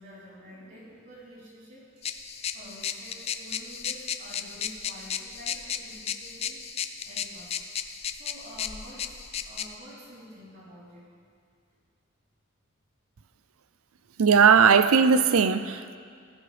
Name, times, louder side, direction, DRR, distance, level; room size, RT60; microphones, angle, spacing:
voice 1, 0.0-2.1 2.5-6.7 7.0-7.6 8.1-9.2 9.4-11.1, equal, 45° right, 3.8 m, -48 dB
sound 1, 2.0-9.7, left 8 dB, 30° left, 0.4 m, -35 dB
voice 2, 14.2-16.0, right 6 dB, 90° right, 0.5 m, -19 dB
15.5 x 14.5 x 3.4 m
head